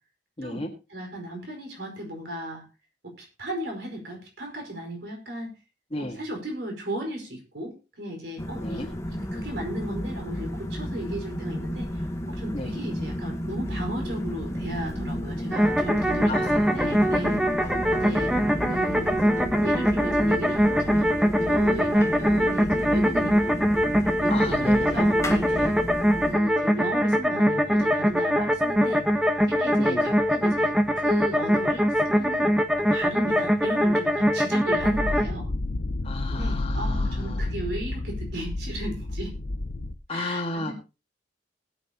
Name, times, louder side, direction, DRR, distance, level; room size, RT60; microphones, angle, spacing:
voice 1, 0.4-0.7 5.9-6.2 8.6-8.9 12.5-12.7 16.3-18.9 24.3-25.1 25.5-25.7 29.8-30.1 36.0-37.5 40.1-40.7, left 2 dB, 35° left, 2 dB, 1.6 m, -34 dB
voice 2, 0.9-2.6 3.0-5.5 5.9-11.9 12.3-16.4 16.7-17.4 17.9-18.3 18.6-19.3 19.6-21.1 21.5-23.7 24.2-25.6 26.3-29.0 29.5-35.5 36.3-39.3 40.1-40.7, right 1 dB, 70° right, 3 dB, 4.9 m, -35 dB
sound 1, 8.4-26.4, equal, 15° left, 1.2 m, -32 dB
sound 2, 15.5-35.3, equal, 5° right, 1.1 m, -23 dB
sound 3, 34.8-39.9, left 2 dB, 50° left, 0.9 m, -30 dB
20.0 x 9.1 x 2.9 m, 0.30 s
head